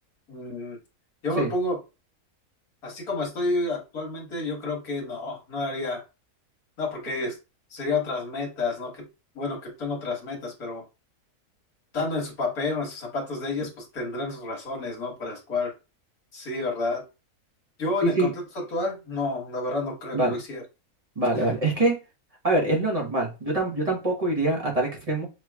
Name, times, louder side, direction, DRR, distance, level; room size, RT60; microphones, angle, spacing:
voice 1, 0.3-0.8 1.2-1.8 2.8-6.0 6.8-7.4 7.7-9.0 9.4-10.8 11.9-15.7 16.3-17.0 17.8-20.6 21.3-21.5, left 2 dB, 70° left, 0 dB, 1.9 m, -30 dB
voice 2, 21.2-21.9 22.4-25.3, right 2 dB, 25° right, -1 dB, 1.1 m, -24 dB
5.8 x 3.0 x 2.3 m, 0.28 s
omnidirectional pair, 1.6 m